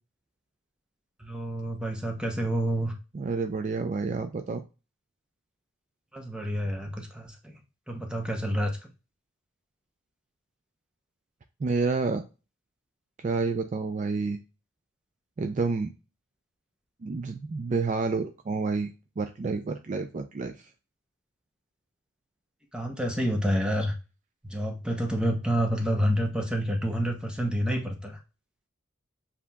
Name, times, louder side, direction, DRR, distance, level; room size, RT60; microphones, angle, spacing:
voice 1, 1.2-2.9 6.1-7.5 7.9-8.7 22.7-23.9 24.4-28.2, equal, 5° right, 2 dB, 0.7 m, -28 dB
voice 2, 3.1-4.6 11.6-12.2 13.2-14.4 15.4-15.9 17.0-20.5, right 4 dB, 35° right, 7 dB, 0.3 m, -29 dB
7.2 x 2.8 x 2.3 m, 0.31 s
head